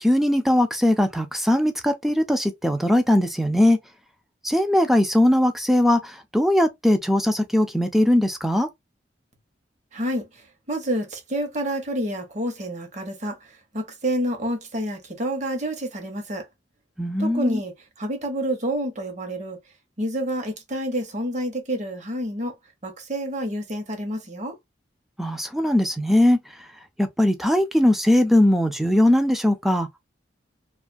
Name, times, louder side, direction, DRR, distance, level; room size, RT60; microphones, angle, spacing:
voice 1, 0.0-3.8 4.4-6.0 6.3-8.7 17.0-17.6 25.2-26.4 27.0-29.9, left 1 dB, ahead, 0.4 m, -20 dB
voice 2, 9.9-16.4 17.2-19.6 20.0-22.5 22.8-24.6, right 1 dB, 40° right, 1.0 m, -29 dB
2.5 x 2.4 x 2.5 m
head